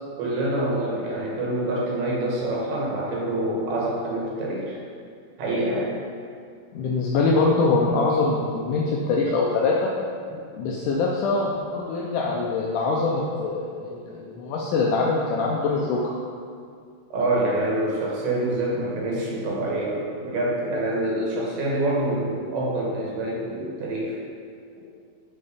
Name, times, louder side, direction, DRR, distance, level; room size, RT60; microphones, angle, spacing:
voice 1, 0.2-4.8 5.4-6.0 17.1-24.2, right 1 dB, 85° right, -4 dB, 3.6 m, -26 dB
voice 2, 6.7-9.9 10.6-16.0, left 3 dB, 80° left, -3 dB, 1.8 m, -23 dB
8.6 x 4.7 x 5.0 m, 2.3 s
omnidirectional pair, 4.4 m